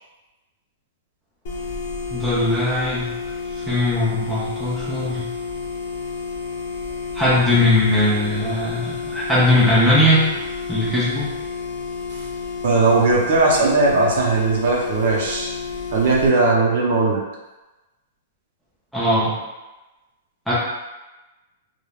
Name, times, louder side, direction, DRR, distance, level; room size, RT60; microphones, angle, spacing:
sound 1, 1.5-16.3, left 5 dB, 50° left, 0.7 m, -31 dB
voice 1, 2.1-3.1 3.7-5.3 7.1-10.4 10.7-11.3 18.9-19.3 20.5-20.6, left 1 dB, ahead, -10 dB, 0.5 m, -19 dB
voice 2, 12.6-15.5 15.9-17.2, right 3 dB, 50° right, -2 dB, 0.5 m, -18 dB
3.2 x 2.0 x 2.3 m, 1.1 s
supercardioid pair, 175°, 0 cm